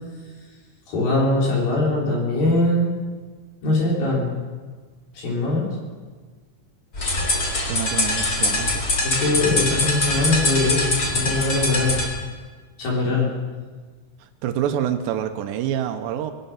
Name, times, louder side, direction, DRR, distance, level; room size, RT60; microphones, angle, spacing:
voice 1, 0.9-2.9 3.6-4.3 5.1-5.7 9.0-12.0 12.8-13.3, left 2 dB, 55° left, -4 dB, 5.2 m, -21 dB
sound 1, 6.9-12.1, left 2 dB, 30° left, 1.8 m, -23 dB
voice 2, 7.4-8.8 14.4-16.3, right 10 dB, 85° right, 8 dB, 3.1 m, -27 dB
20.5 x 11.0 x 5.9 m, 1.4 s
omnidirectional pair, 4.9 m